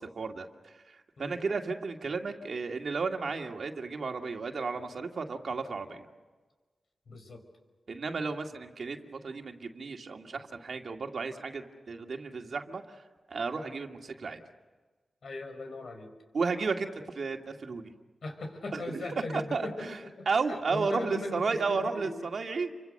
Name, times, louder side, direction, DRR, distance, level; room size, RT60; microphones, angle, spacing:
voice 1, 0.0-6.1 7.9-9.0 9.2-13.0 13.3-14.4 16.3-17.9 18.7-20.0 20.3-22.7, right 4 dB, 65° right, 4 dB, 2.3 m, -33 dB
voice 2, 7.1-7.4 15.2-16.1 18.2-20.3 20.7-22.1, left 2 dB, 70° left, 5 dB, 5.5 m, -39 dB
29.5 x 25.5 x 6.7 m, 1.3 s
cardioid pair, 70°, 0 cm